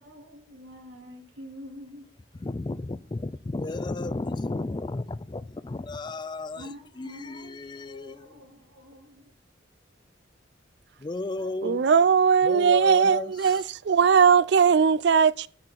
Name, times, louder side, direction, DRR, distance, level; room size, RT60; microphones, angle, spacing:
voice 1, 0.0-2.0 6.5-9.2 11.4-11.5, equal, 90° right, 2.2 m, -46 dB
voice 2, 2.3-8.5 11.0-11.9 12.4-13.6, left 2 dB, 25° left, 0.4 m, -34 dB
voice 3, 11.6-15.5, right 6 dB, 60° right, 0.4 m, -19 dB
8.6 x 4.2 x 6.3 m
head